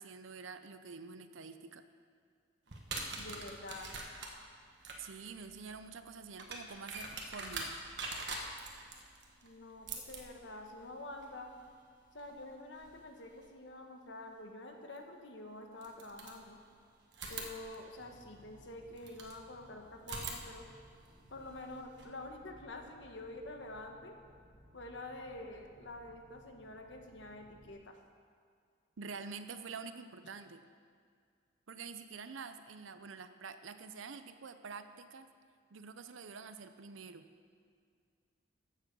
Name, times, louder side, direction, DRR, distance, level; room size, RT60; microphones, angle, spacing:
voice 1, 0.0-1.8 5.0-7.8 29.0-30.6 31.7-35.3 35.7-37.3, right 5 dB, 85° right, 10 dB, 0.6 m, -47 dB
sound 1, 2.7-13.5 15.0-15.1 15.8-16.7 17.1-19.4 20.0-22.0, right 3 dB, 60° right, 1.4 m, -46 dB
voice 2, 3.2-4.0 9.4-11.5 12.1-16.6 17.3-20.7 21.3-24.2 24.7-28.0, left 2 dB, 65° left, 4 dB, 1.3 m, -47 dB
sound 2, 18.0-27.7, equal, 20° right, 2.2 m, -62 dB
14.0 x 7.5 x 5.3 m, 2.1 s
head